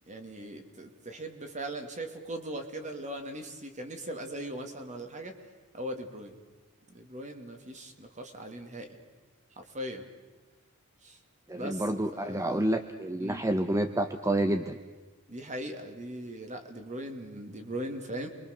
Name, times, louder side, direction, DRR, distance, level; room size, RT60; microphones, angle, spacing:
voice 1, 0.1-5.4 5.7-6.4 6.9-9.0 9.6-10.1 11.0-11.2 11.5-12.8 13.2-13.4 15.3-18.3, right 1 dB, 35° right, 5 dB, 2.5 m, -39 dB
voice 2, 11.5-14.8, right 1 dB, 15° right, 8 dB, 0.8 m, -29 dB
29.0 x 23.0 x 6.7 m, 1.3 s
head